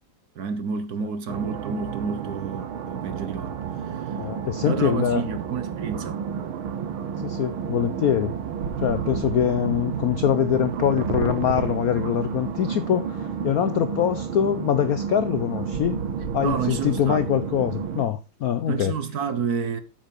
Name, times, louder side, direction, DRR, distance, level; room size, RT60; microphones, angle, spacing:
voice 1, 0.3-3.5 3.9-4.1 4.6-6.2 16.4-17.3 18.7-19.8, right 6 dB, 55° right, 1.3 m, -29 dB
sound 1, 1.3-18.0, right 7 dB, 85° right, 1.9 m, -31 dB
voice 2, 4.2-5.2 7.2-8.3 8.8-16.0 16.3-18.9, left 10 dB, 70° left, 0.8 m, -24 dB
sound 2, 8.6-13.7 15.7-17.9, right 5 dB, 40° right, 1.4 m, -38 dB
8.7 x 7.5 x 5.2 m
omnidirectional pair, 2.3 m